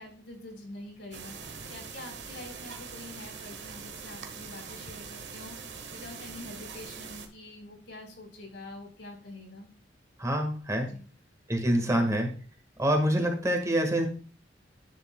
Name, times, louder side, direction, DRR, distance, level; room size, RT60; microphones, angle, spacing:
voice 1, 0.0-9.7 10.8-11.0 11.7-12.2, left 2 dB, 80° left, 1 dB, 3.8 m, -46 dB
sound 1, 1.1-7.3, right 5 dB, 70° right, 1.3 m, -43 dB
voice 2, 10.2-10.9 11.5-12.3 12.8-14.1, equal, 20° right, 3 dB, 1.5 m, -26 dB
10.5 x 6.7 x 2.2 m, 0.42 s
head